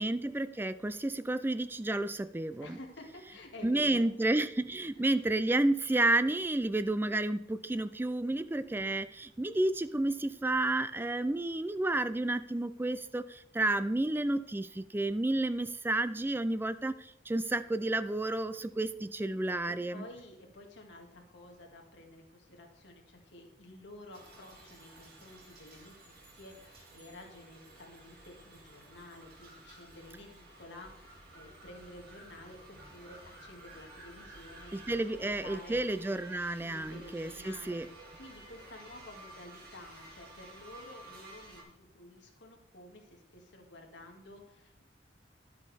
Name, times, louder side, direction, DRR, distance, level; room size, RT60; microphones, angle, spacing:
voice 1, 0.0-2.8 3.6-20.1 34.7-37.9, right 2 dB, 10° right, 14 dB, 0.4 m, -31 dB
voice 2, 2.6-4.0 4.7-5.0 19.2-19.3 19.7-35.8 36.6-44.8, left 1 dB, 65° left, 1 dB, 2.0 m, -51 dB
sound 1, 24.1-41.6, right 1 dB, 55° right, 2.3 m, -53 dB
11.5 x 8.3 x 3.4 m, 0.78 s
head